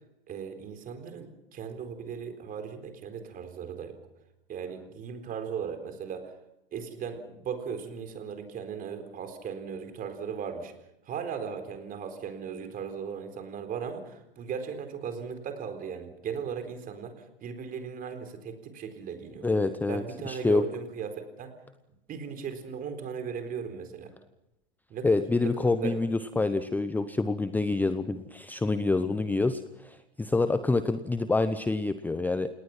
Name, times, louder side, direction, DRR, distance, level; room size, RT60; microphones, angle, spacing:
voice 1, 0.3-4.0 4.5-6.3 6.7-10.7 11.1-17.1 17.4-19.5 19.9-21.5 22.1-24.1 24.9-25.1 25.6-26.0, right 7 dB, 30° right, 7 dB, 4.1 m, -37 dB
voice 2, 19.4-20.7 25.0-32.5, left 3 dB, 5° left, 12 dB, 0.8 m, -27 dB
29.0 x 19.0 x 6.1 m, 0.88 s
hypercardioid pair, 105°, 29 cm